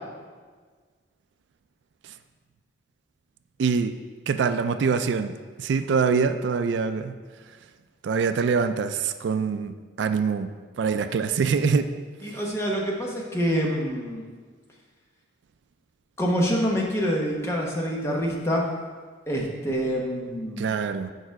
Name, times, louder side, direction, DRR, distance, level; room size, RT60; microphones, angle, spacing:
voice 1, 3.6-3.9 4.3-7.1 8.0-11.9 20.6-21.1, right 5 dB, 75° right, 10 dB, 0.3 m, -24 dB
voice 2, 12.2-14.2 16.2-18.6 19.3-20.7, equal, 15° left, -2 dB, 0.9 m, -26 dB
6.6 x 4.9 x 4.6 m, 1.5 s
head